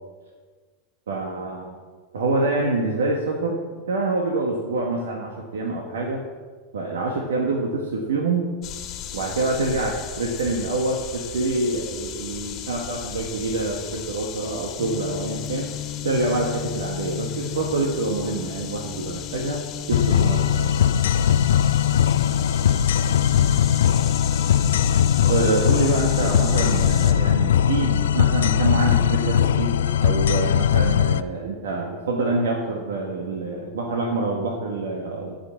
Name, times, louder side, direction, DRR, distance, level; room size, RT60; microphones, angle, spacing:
voice 1, 1.1-1.7 2.1-3.6 3.9-6.2 6.7-8.5 9.1-15.7 16.0-20.7 25.2-35.4, right 2 dB, 85° right, 0 dB, 1.6 m, -26 dB
sound 1, 8.6-27.1, left 10 dB, 45° left, 1.6 m, -35 dB
sound 2, 14.8-29.6, left 12 dB, 15° left, 0.8 m, -37 dB
sound 3, 19.9-31.2, left 9 dB, 80° left, 0.4 m, -20 dB
15.0 x 5.8 x 7.2 m, 1.5 s
hypercardioid pair, 105°, 0 cm